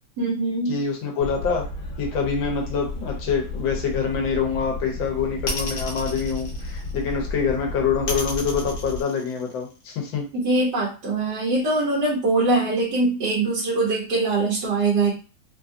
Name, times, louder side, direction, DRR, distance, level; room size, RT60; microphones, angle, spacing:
voice 1, 0.2-0.8 10.3-15.1, right 2 dB, 65° right, -5 dB, 1.5 m, -22 dB
voice 2, 0.7-1.6 2.0-10.3, left 6 dB, 85° left, 1 dB, 1.6 m, -25 dB
sound 1, 1.2-9.0, left 1 dB, 45° left, 1.4 m, -33 dB
sound 2, 5.4-7.2 8.1-9.8, left 2 dB, 65° left, 1.6 m, -32 dB
3.9 x 2.4 x 2.6 m, 0.35 s
omnidirectional pair, 2.1 m